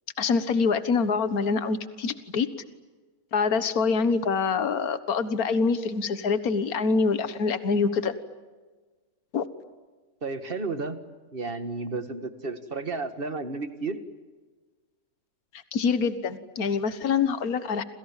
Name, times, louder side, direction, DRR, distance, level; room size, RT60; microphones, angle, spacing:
voice 1, 0.2-2.5 3.3-8.1 9.3-9.5 15.5-17.8, left 5 dB, 75° left, 12 dB, 1.9 m, -25 dB
voice 2, 10.2-11.0 11.3-14.0, right 3 dB, 35° right, 10 dB, 2.1 m, -32 dB
29.0 x 27.5 x 7.5 m, 1.3 s
omnidirectional pair, 1.6 m